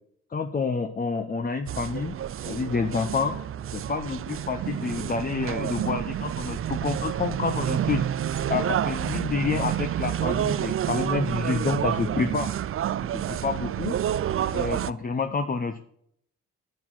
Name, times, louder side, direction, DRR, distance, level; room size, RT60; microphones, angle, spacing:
voice 1, 0.3-2.2 2.5-3.4 3.7-8.0 8.5-12.5 13.1-14.0 14.5-15.8, left 4 dB, 30° left, 7 dB, 0.9 m, -28 dB
sound 1, 1.7-14.9, right 10 dB, 45° right, 0.5 m, -29 dB
11.0 x 6.4 x 7.5 m, 0.68 s
cardioid pair, 90°, 30 cm